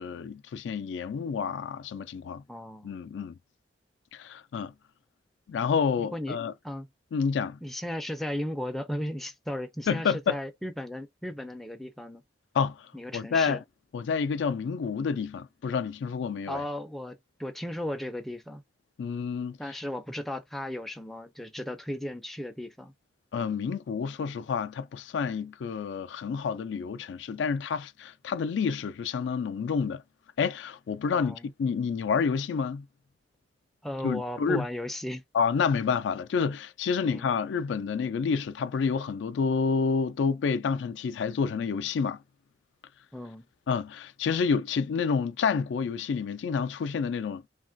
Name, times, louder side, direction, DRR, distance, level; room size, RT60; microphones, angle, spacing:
voice 1, 0.0-2.4 2.8-3.3 4.1-4.7 5.5-6.5 7.1-7.6 9.9-10.4 12.5-12.8 13.1-13.6 13.9-16.6 19.0-19.6 23.3-30.0 30.4-32.8 34.0-34.6 35.3-42.2 43.7-47.5, left 5 dB, 90° left, 0.3 m, -29 dB
voice 2, 2.5-2.9 6.0-6.4 6.6-6.9 7.6-12.2 12.9-13.6 16.5-18.6 19.6-22.9 31.1-31.5 33.8-35.2 37.0-37.3 43.1-43.5, left 1 dB, ahead, 0.3 m, -35 dB
3.1 x 2.3 x 2.5 m
head